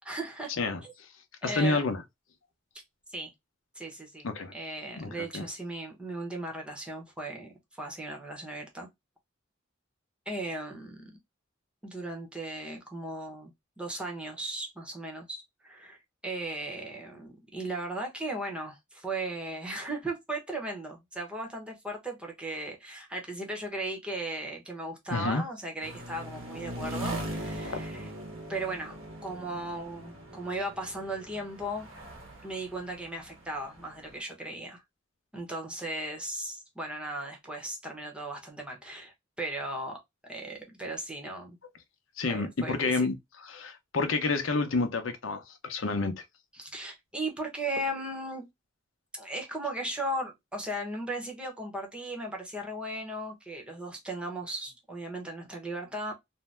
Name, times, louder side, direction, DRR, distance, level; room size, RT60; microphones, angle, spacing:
voice 1, 0.0-0.5 0.8-0.9 1.4-1.8 3.1-3.3 3.7-8.9 10.3-11.1 11.8-28.1 28.5-31.9 32.4-34.8 35.3-40.0 40.2-41.6 42.3-43.1 46.5-48.5 49.1-56.1, right 1 dB, 5° right, 0.9 m, -37 dB
voice 2, 1.4-2.0 4.2-4.5 5.0-5.5 25.1-25.4 27.6-27.8 42.2-43.1 43.4-46.1, left 3 dB, 75° left, 0.7 m, -29 dB
sound 1, 25.8-34.2, right 1 dB, 90° right, 1.0 m, -40 dB
2.6 x 2.1 x 3.2 m
head